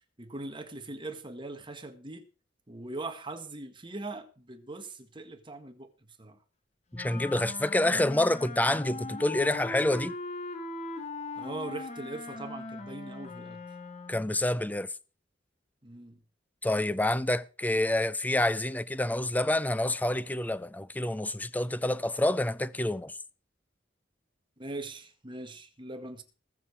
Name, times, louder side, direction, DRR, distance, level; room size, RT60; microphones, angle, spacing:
voice 1, 0.2-2.3 2.7-5.9 6.2-6.4 11.4-13.6 15.8-16.2 24.6-26.2, right 2 dB, 25° right, 1.7 m, -41 dB
Wind instrument woodwind instrument, 6.9-14.3, left 3 dB, 40° left, 2.0 m, -40 dB
voice 2, 6.9-10.1 14.1-14.9 16.6-23.1, left 1 dB, 10° left, 0.5 m, -28 dB
20.0 x 6.8 x 4.7 m
head